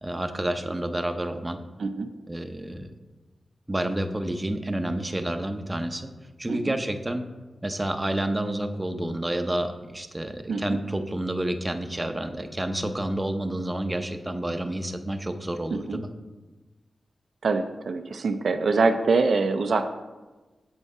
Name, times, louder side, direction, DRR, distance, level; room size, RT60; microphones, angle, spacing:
voice 1, 0.0-1.6 2.3-2.9 3.7-6.1 6.4-7.2 7.6-16.1, right 1 dB, 20° right, 7 dB, 0.6 m, -29 dB
voice 2, 1.8-2.1 6.5-6.8 10.5-10.8 15.7-16.0 17.4-19.9, right 4 dB, 75° right, 7 dB, 0.4 m, -24 dB
7.4 x 5.4 x 4.7 m, 1.2 s
cardioid pair, 70°, 0 cm